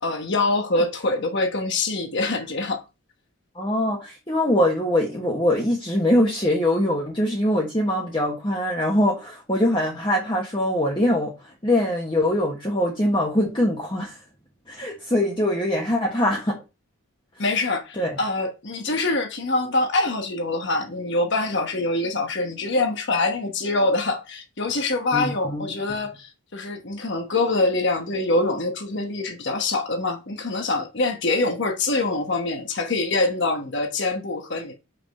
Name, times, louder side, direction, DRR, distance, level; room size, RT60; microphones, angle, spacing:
voice 1, 0.0-2.8 17.4-34.8, left 2 dB, 55° left, 1.1 m, -24 dB
voice 2, 3.5-14.2 14.7-16.6 17.4-17.5 18.0-18.2 25.1-25.6, left 1 dB, 20° left, 1.2 m, -23 dB
5.9 x 4.9 x 5.4 m
head